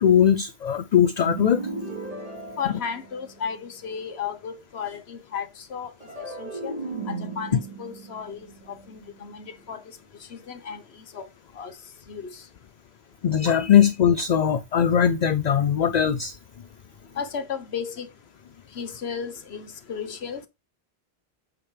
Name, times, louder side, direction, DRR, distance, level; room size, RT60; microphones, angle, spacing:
voice 1, 0.0-1.6 13.2-16.4, left 9 dB, 50° left, 0.5 m, -20 dB
sound 1, 1.2-3.6 6.0-9.3, right 3 dB, 35° right, 3.4 m, -36 dB
voice 2, 2.6-5.9 6.2-6.7 7.1-9.8 10.2-11.3 11.5-11.8 12.1-12.4 17.2-18.1 18.7-20.4, left 7 dB, 80° left, 1.3 m, -34 dB
8.6 x 5.0 x 3.3 m
omnidirectional pair, 1.1 m